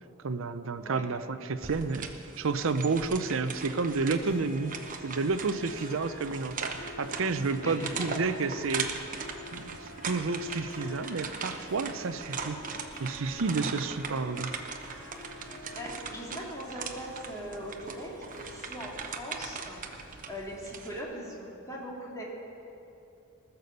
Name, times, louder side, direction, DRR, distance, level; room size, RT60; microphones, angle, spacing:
voice 1, 0.2-2.1 2.4-4.7 5.0-8.9 9.5-12.6 13.0-14.5, right 4 dB, 65° right, 11 dB, 0.6 m, -30 dB
sound 1, 1.6-21.0, right 5 dB, 40° right, 0.9 m, -40 dB
Harp, 4.1-20.6, left 1 dB, 65° left, 2.7 m, -48 dB
voice 2, 7.6-8.1 15.7-22.2, equal, 15° left, -4 dB, 2.5 m, -40 dB
19.5 x 6.9 x 6.7 m, 2.8 s
head